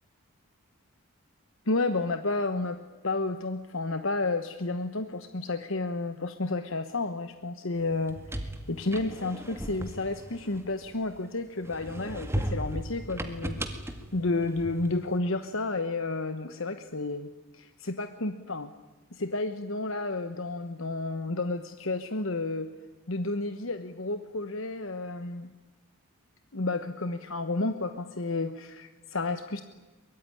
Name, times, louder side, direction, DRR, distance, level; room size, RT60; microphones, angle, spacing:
voice 1, 1.7-2.8 3.0-13.6 14.1-17.3 17.5-18.7 19.1-22.7 23.1-25.5 26.5-29.6, left 2 dB, 60° left, 10 dB, 1.1 m, -31 dB
sound 1, 7.9-11.2 11.6-15.0, right 1 dB, 10° right, 2.0 m, -36 dB
23.5 x 22.0 x 9.9 m, 1.2 s
head